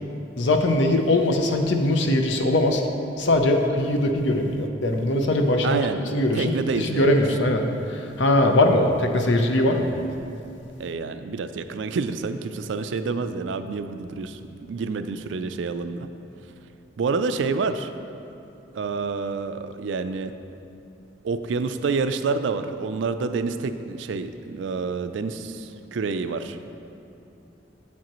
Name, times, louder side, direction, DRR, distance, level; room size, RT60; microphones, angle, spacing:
voice 1, 0.4-2.8 3.2-5.9 6.1-9.9, left 1 dB, 80° left, 4 dB, 0.6 m, -21 dB
voice 2, 5.6-6.0 6.3-7.2 10.8-16.1 17.0-17.9 18.7-20.3 21.2-26.7, right 4 dB, 80° right, 10 dB, 0.4 m, -28 dB
8.3 x 7.4 x 3.0 m, 2.8 s
head